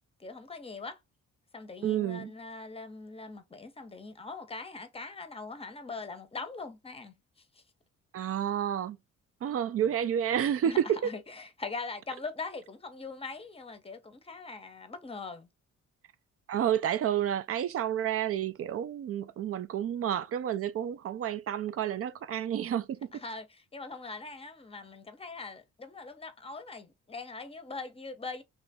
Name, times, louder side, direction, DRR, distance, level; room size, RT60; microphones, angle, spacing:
voice 1, 0.2-1.0 1.5-7.1 10.7-10.8 11.0-15.5 23.2-23.5 23.7-28.4, left 4 dB, 20° left, 0.7 m, -41 dB
voice 2, 1.8-2.3 8.1-9.0 9.4-11.1 16.5-23.2, right 10 dB, 50° right, 0.4 m, -30 dB
3.0 x 2.5 x 3.4 m
cardioid pair, 90°, 30 cm